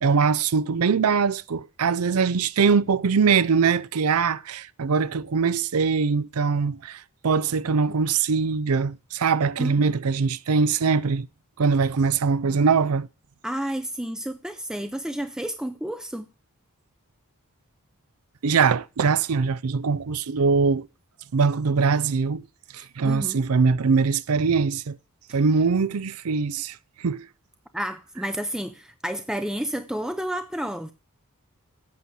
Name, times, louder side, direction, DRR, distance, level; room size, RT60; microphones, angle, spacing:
voice 1, 0.0-11.3 11.6-13.1 18.4-20.9 21.3-22.4 22.7-25.0 25.3-27.3, right 5 dB, 85° right, 0.5 m, -22 dB
voice 2, 13.4-16.3 22.7-23.4 27.7-30.9, equal, 5° right, 0.4 m, -31 dB
8.6 x 6.1 x 8.0 m
head